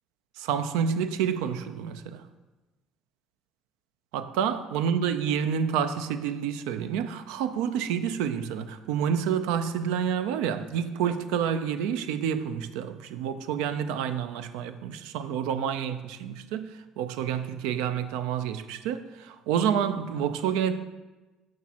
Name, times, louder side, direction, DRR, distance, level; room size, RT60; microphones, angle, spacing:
voice 1, 0.4-2.3 4.1-20.8, right 8 dB, 85° right, 0.3 m, -29 dB
6.2 x 5.9 x 2.9 m
supercardioid pair, 80°, 0 cm